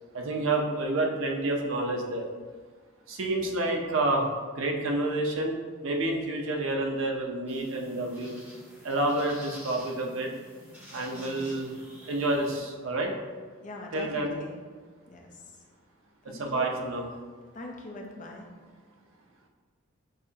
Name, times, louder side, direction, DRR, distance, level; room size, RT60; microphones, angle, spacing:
voice 1, 0.1-2.3 3.1-4.3 4.5-5.6 5.8-8.3 8.8-10.3 10.9-11.7 12.1-13.1 13.9-14.4 16.2-17.1, right 2 dB, 80° right, 1 dB, 0.6 m, -29 dB
sound 1, 7.5-12.6, equal, 10° right, 1.5 m, -49 dB
voice 2, 11.1-11.5 13.6-14.5 15.1-15.4 16.3-16.7 17.5-18.5, left 2 dB, 40° left, 1 dB, 0.6 m, -42 dB
6.5 x 2.8 x 2.8 m, 1.5 s
head